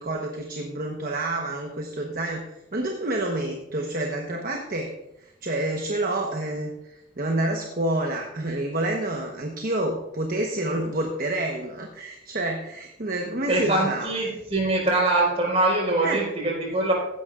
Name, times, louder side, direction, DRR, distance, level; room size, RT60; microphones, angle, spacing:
voice 1, 0.0-2.4 2.7-4.9 5.2-14.1 16.0-16.2, right 1 dB, 50° right, 2 dB, 1.1 m, -28 dB
voice 2, 13.5-16.9, right 2 dB, 35° right, -2 dB, 4.5 m, -23 dB
16.0 x 11.0 x 2.5 m, 0.88 s
head